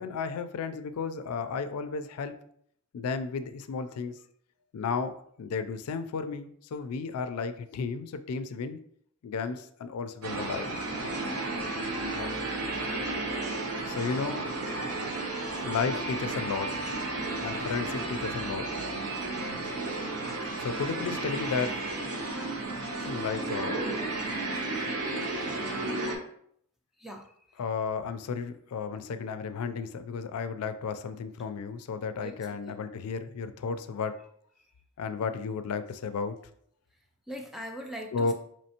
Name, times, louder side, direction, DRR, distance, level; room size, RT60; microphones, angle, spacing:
voice 1, 0.0-2.4 2.9-4.2 4.7-8.8 9.2-10.7 12.1-12.3 13.9-14.5 15.6-16.8 17.4-18.7 20.6-21.8 23.1-23.8 27.6-34.2 35.0-36.4 38.1-38.3, left 5 dB, 85° left, 10 dB, 0.4 m, -33 dB
sound 1, 10.2-26.1, right 2 dB, 85° right, 0.8 m, -33 dB
voice 2, 27.0-27.6 32.2-32.4 32.7-32.8 34.6-34.7 36.9-38.3, equal, ahead, 1 dB, 0.3 m, -42 dB
4.2 x 3.1 x 2.8 m, 0.67 s
head